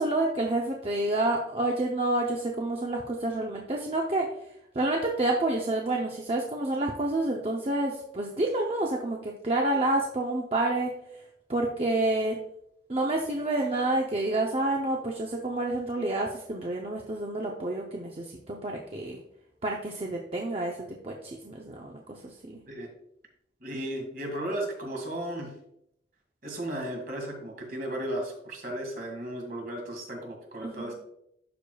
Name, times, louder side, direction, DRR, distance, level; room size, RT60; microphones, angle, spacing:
voice 1, 0.0-4.3 4.7-10.9 11.5-12.4 12.9-19.2 19.6-22.6 30.6-30.9, right 2 dB, 35° right, 0 dB, 0.6 m, -29 dB
voice 2, 23.6-25.5 26.4-30.9, right 1 dB, 50° right, 1 dB, 1.9 m, -35 dB
12.0 x 4.8 x 2.3 m, 0.76 s
head